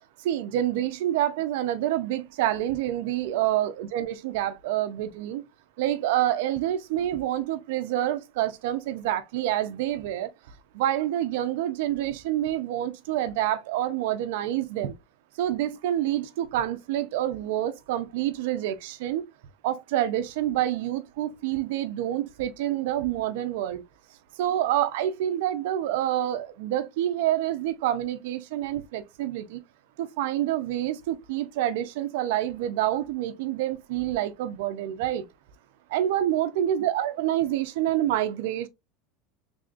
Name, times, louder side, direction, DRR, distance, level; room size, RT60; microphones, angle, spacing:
voice 1, 0.2-5.4 5.8-10.3 10.7-14.9 15.4-19.2 19.6-23.8 24.4-29.6 30.0-35.2 35.9-38.7, right 12 dB, 75° right, 0.6 m, -27 dB
3.7 x 3.4 x 2.5 m
supercardioid pair, 155°, 0 cm